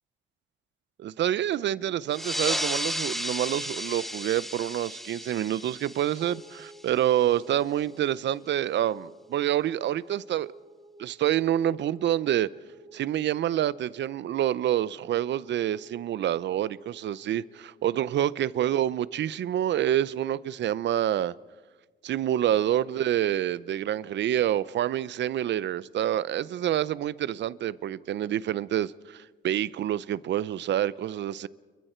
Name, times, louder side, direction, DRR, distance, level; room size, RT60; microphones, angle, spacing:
voice 1, 1.0-10.5 11.0-12.5 12.9-21.3 22.0-31.5, right 11 dB, 65° right, 0.7 m, -27 dB
sound 1, 2.1-7.2, equal, ahead, 1.0 m, -34 dB
sound 2, 6.2-18.7, right 2 dB, 25° right, 5.5 m, -53 dB
29.5 x 23.5 x 4.5 m
cardioid pair, 90°, 20 cm